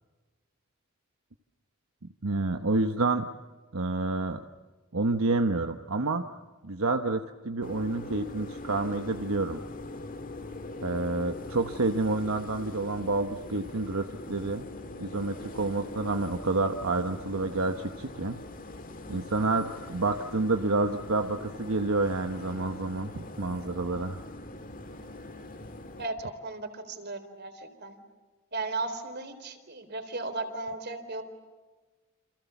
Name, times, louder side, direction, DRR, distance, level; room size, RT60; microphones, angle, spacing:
voice 1, 2.2-3.3 3.7-4.4 4.9-6.2 6.6-9.6 10.8-14.7 15.0-18.4 19.1-24.3, right 3 dB, 85° right, 7 dB, 1.1 m, -29 dB
sound 1, 7.6-26.1, left 2 dB, 40° left, 1.8 m, -42 dB
voice 2, 26.0-28.0 28.5-31.2, right 3 dB, 50° right, 8 dB, 4.0 m, -36 dB
29.5 x 27.5 x 7.2 m, 1.3 s
head